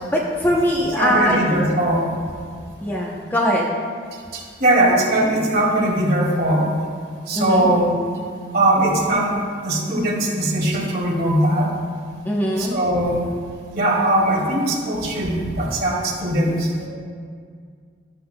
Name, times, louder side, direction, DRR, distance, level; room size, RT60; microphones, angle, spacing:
voice 1, 0.1-1.6 2.8-3.7 7.4-7.7 12.2-12.8, equal, 10° left, -3 dB, 0.7 m, -21 dB
voice 2, 1.0-2.0 4.3-6.6 7.3-7.9 8.5-9.3 9.6-11.7 12.6-13.3 13.7-16.9, right 1 dB, 50° right, -4 dB, 2.3 m, -20 dB
12.0 x 11.5 x 2.2 m, 2.1 s
head